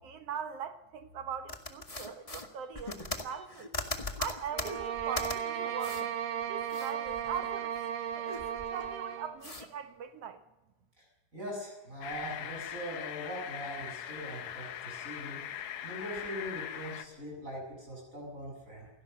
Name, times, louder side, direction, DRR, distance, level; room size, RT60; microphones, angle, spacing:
voice 1, 0.0-3.7 4.2-6.0 6.5-7.7 8.2-8.3 8.7-10.4, right 7 dB, 60° right, 1.8 m, -41 dB
sound 1, 1.5-5.3 5.8-6.1 6.4-7.8 8.1-8.9 9.4-9.7, left 2 dB, 20° left, 1.0 m, -39 dB
sound 2, 4.5-9.4, right 9 dB, 90° right, 3.7 m, -35 dB
voice 2, 11.3-18.9, equal, 20° right, 7.3 m, -41 dB
sound 3, 12.0-17.1, left 10 dB, 90° left, 2.9 m, -41 dB
28.5 x 17.5 x 6.6 m
omnidirectional pair, 3.7 m